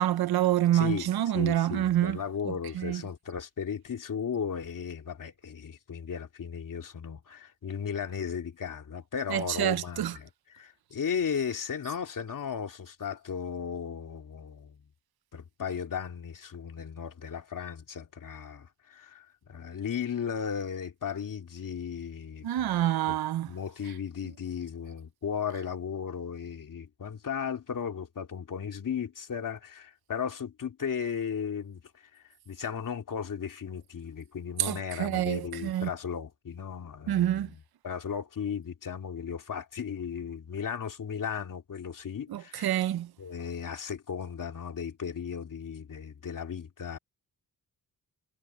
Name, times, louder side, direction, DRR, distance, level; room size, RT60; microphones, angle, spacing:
voice 1, 0.0-2.2 2.5-3.0 9.3-10.2 22.4-23.5 34.6-35.9 37.1-37.5 42.3-43.1, right 12 dB, 75° right, 0.7 m, -27 dB
voice 2, 0.7-1.1 1.3-14.8 15.3-22.8 23.1-23.2 23.5-42.8 43.2-47.0, left 7 dB, 55° left, 2.8 m, -36 dB
wide cardioid pair, 115°, 38 cm